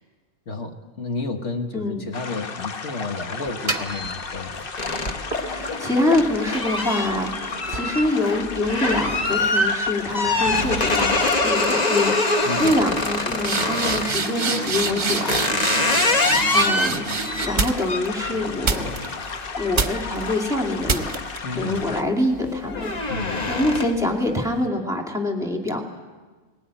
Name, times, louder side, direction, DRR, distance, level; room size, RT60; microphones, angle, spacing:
voice 1, 0.5-4.7 12.4-12.7 21.4-21.9 23.1-23.5, left 3 dB, 75° left, 4 dB, 1.8 m, -31 dB
voice 2, 1.7-2.0 5.5-15.5 16.5-17.0 17.4-18.8 19.6-21.2 21.5-23.2 23.5-25.8, left 1 dB, 5° right, 1 dB, 2.5 m, -25 dB
sound 1, 2.1-22.0, left 5 dB, 55° left, 1.0 m, -34 dB
sound 2, 3.5-4.7 5.3-8.9 9.3-9.7 10.4-10.6 10.9-11.3 11.6-12.0 12.3-12.4 12.6-18.1 18.6-19.3 19.7-20.2 20.9-21.4, right 4 dB, 40° right, 1.0 m, -28 dB
sound 3, 4.8-14.2 14.8-21.2 21.6-22.0 22.3-24.1, left 2 dB, 35° left, 1.4 m, -25 dB
19.5 x 17.0 x 9.1 m, 1.3 s
omnidirectional pair, 1.2 m